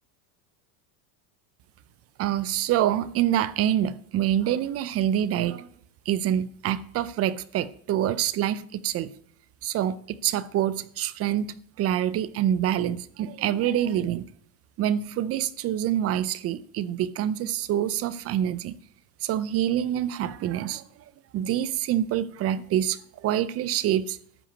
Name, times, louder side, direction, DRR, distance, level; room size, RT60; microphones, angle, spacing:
voice 1, 2.2-5.7 6.1-9.1 9.6-14.3 14.8-18.8 19.2-20.8 21.3-24.2, right 11 dB, 30° right, 0.5 m, -26 dB
12.5 x 5.6 x 8.3 m
supercardioid pair, 125°, 48 cm